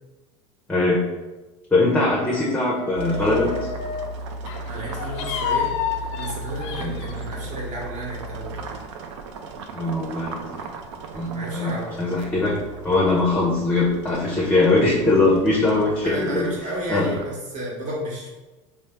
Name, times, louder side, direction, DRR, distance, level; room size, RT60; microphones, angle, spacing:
voice 1, 1.7-3.5 6.8-6.9 9.7-10.6 11.1-12.6 12.8-16.5 16.9-17.1, left 2 dB, 10° left, -4 dB, 0.6 m, -21 dB
sound 1, 2.0-4.2 4.5-7.2, left 8 dB, 75° left, 0.4 m, -30 dB
sound 2, 3.0-17.2, right 2 dB, 80° right, 0.4 m, -36 dB
voice 2, 4.4-8.6 11.3-11.9 16.0-18.3, equal, 50° right, -3 dB, 1.2 m, -32 dB
3.1 x 2.0 x 3.2 m, 1.2 s
supercardioid pair, 105°, 15 cm